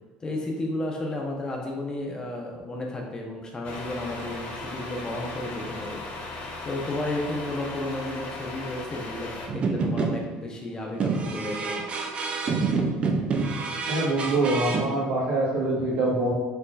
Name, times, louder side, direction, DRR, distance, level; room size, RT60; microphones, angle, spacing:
voice 1, 0.2-6.0 6.6-11.8, left 1 dB, 20° left, 0 dB, 0.8 m, -33 dB
Truck, 3.6-9.5, left 2 dB, 50° left, 0.8 m, -37 dB
sound 1, 9.5-10.5 11.0-14.8, right 4 dB, 35° right, 0.5 m, -27 dB
voice 2, 13.9-16.3, right 2 dB, 75° right, -4 dB, 1.4 m, -24 dB
4.5 x 3.7 x 2.5 m, 1.2 s
cardioid pair, 115°, 3 cm